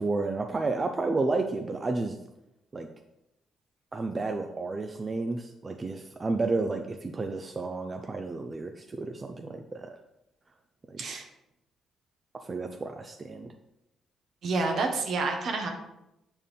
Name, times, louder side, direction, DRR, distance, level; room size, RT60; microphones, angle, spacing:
voice 1, 0.0-2.2 2.7-2.9 3.9-10.0 10.9-11.0 12.3-13.5, right 3 dB, 30° right, 5 dB, 0.5 m, -31 dB
voice 2, 14.4-15.7, right 3 dB, 65° right, 3 dB, 1.2 m, -28 dB
7.4 x 4.5 x 3.5 m, 0.87 s
cardioid pair, 90°, 0 cm